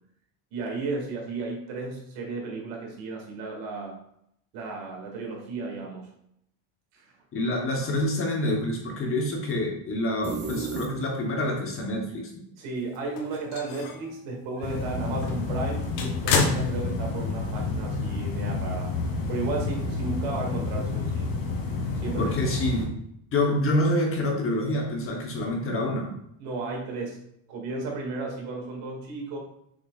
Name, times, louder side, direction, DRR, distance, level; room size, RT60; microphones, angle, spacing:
voice 1, 0.5-4.0 4.5-6.1 6.9-7.1 12.6-18.9 19.3-21.3 21.9-22.3 26.4-27.2 27.5-29.4, right 3 dB, 75° right, 0 dB, 2.2 m, -34 dB
voice 2, 7.3-12.3 22.2-22.9 23.3-26.1, left 1 dB, 25° left, 1 dB, 1.0 m, -27 dB
sound 1, 10.2-11.5, right 4 dB, 25° right, 0.5 m, -33 dB
sound 2, 12.9-14.1 14.6-14.7 15.1-17.3 17.6-17.7 18.9-19.0, left 5 dB, 90° left, 1.4 m, -29 dB
sound 3, 14.6-22.8, left 3 dB, 45° left, 2.1 m, -30 dB
6.7 x 6.4 x 2.4 m, 0.73 s
cardioid pair, 165°, 48 cm